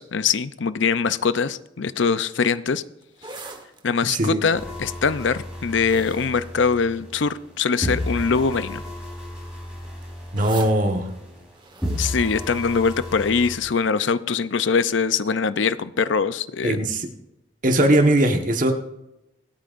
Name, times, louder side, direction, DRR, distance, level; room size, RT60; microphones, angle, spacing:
voice 1, 0.0-2.8 3.8-8.8 12.0-16.8, left 5 dB, 75° left, 14 dB, 0.6 m, -22 dB
sound 1, 3.0-7.5 8.2-8.5 8.8-13.4 13.8-13.9, right 3 dB, 25° right, 1.3 m, -44 dB
voice 2, 4.1-4.4 10.3-11.1 16.6-17.1 17.6-18.7, right 1 dB, 40° right, 4 dB, 1.3 m, -20 dB
sound 2, 4.5-7.5 7.8-11.5 11.8-13.6, left 1 dB, 5° right, 4.1 m, -33 dB
25.5 x 9.0 x 2.6 m, 0.91 s
head